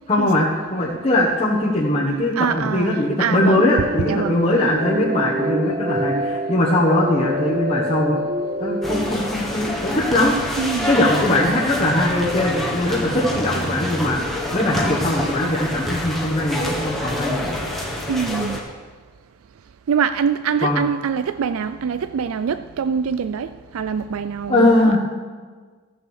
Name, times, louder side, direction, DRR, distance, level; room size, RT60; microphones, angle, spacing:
voice 1, 0.1-8.2 8.6-14.2 14.5-17.5 20.6-20.8 24.5-25.0, left 1 dB, 30° left, -6 dB, 1.4 m, -20 dB
voice 2, 2.4-3.7 4.0-4.4 10.6-10.9 18.1-18.6 19.9-25.0, right 6 dB, 75° right, 11 dB, 0.4 m, -24 dB
sound 1, 3.6-9.0, equal, 30° right, 0.8 m, -26 dB
sound 2, 8.8-18.6, left 1 dB, ahead, 1.5 m, -26 dB
15.0 x 7.1 x 6.5 m, 1.5 s
head